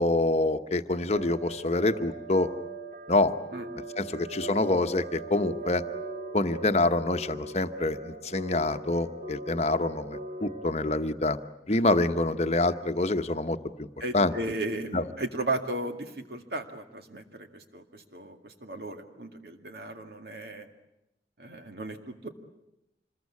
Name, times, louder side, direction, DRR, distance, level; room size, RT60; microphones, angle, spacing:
voice 1, 0.0-2.5 3.1-3.3 4.0-5.8 6.3-11.4 11.7-13.6 14.1-14.3 14.9-15.0, left 2 dB, 40° left, 8 dB, 1.0 m, -26 dB
sound 1, 1.1-10.7, right 3 dB, 45° right, 2.2 m, -40 dB
voice 2, 14.0-20.7 21.4-22.3, right 2 dB, 60° right, 5 dB, 2.2 m, -35 dB
26.5 x 21.0 x 8.4 m, 0.88 s
head